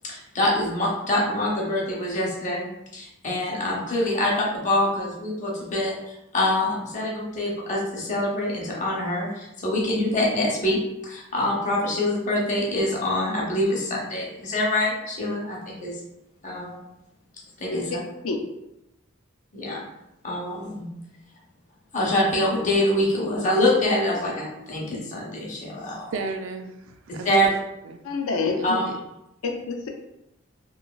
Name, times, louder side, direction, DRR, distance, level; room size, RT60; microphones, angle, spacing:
voice 1, 0.0-16.0 16.4-16.8 17.6-17.8 19.5-19.9 20.2-20.9 21.9-26.1 27.2-27.5 28.6-28.9, left 1 dB, 35° left, -3 dB, 0.7 m, -25 dB
voice 2, 26.1-27.5 27.8-28.0 28.6-29.0, right 4 dB, 65° right, 6 dB, 0.3 m, -34 dB
voice 3, 28.0-28.8 29.4-29.9, left 4 dB, 90° left, 3 dB, 0.4 m, -27 dB
3.1 x 2.5 x 2.3 m, 0.87 s
head